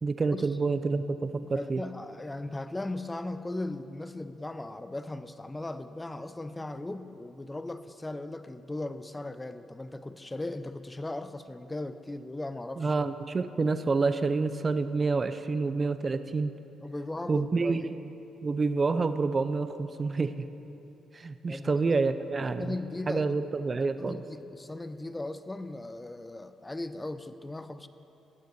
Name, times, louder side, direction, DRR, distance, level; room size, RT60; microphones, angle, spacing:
voice 1, 0.0-1.8 12.8-16.5 17.3-18.0 18.4-20.4 21.1-22.7 23.1-24.2, right 4 dB, 30° right, 11 dB, 0.6 m, -28 dB
voice 2, 1.4-12.9 16.8-17.9 21.5-22.0 22.6-23.3 24.0-27.9, left 2 dB, 15° left, 11 dB, 0.7 m, -38 dB
17.0 x 8.0 x 6.9 m, 3.0 s
cardioid pair, 90°, 0 cm